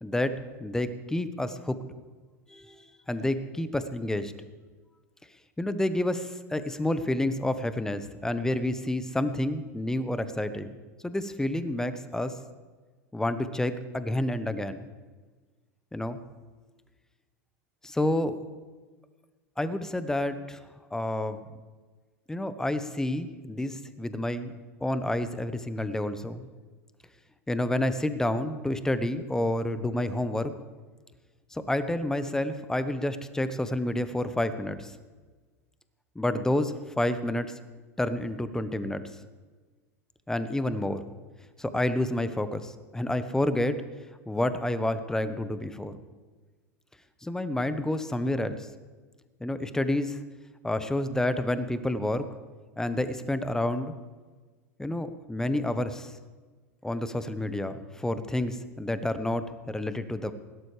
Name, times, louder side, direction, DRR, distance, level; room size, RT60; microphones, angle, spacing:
voice 1, 0.0-1.8 2.5-4.3 5.6-10.8 11.0-12.4 13.1-14.8 15.9-16.2 17.8-18.4 19.6-20.6 20.9-21.4 22.3-24.6 24.8-26.5 27.5-30.5 31.5-34.9 36.1-37.5 38.0-39.0 40.3-41.1 41.6-43.8 44.3-46.0 47.2-48.7 49.4-50.2 50.6-52.3 52.8-53.9 54.8-56.1 56.8-60.3, left 1 dB, 5° left, 11 dB, 1.1 m, -29 dB
20.5 x 16.5 x 3.4 m, 1.4 s
hypercardioid pair, 85°, 9 cm